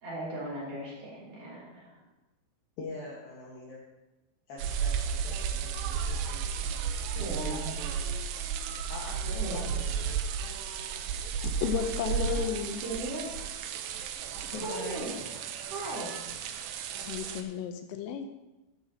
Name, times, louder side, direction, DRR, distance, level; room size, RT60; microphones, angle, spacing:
voice 1, 0.0-2.0 7.2-7.7 9.4-9.6 12.8-13.3 14.6-15.1 15.7-16.2, right 2 dB, 45° right, -7 dB, 3.8 m, -37 dB
voice 2, 2.8-3.8 4.5-6.4 7.2-8.1 8.9-10.2 14.4-15.0, left 2 dB, 65° left, -4 dB, 2.5 m, -43 dB
sound 1, 4.6-17.4, right 7 dB, 80° right, 2.8 m, -33 dB
voice 3, 11.4-12.8 17.0-18.3, left 8 dB, 80° left, 7 dB, 3.3 m, -33 dB
13.5 x 11.5 x 2.9 m, 1.0 s
omnidirectional pair, 6.0 m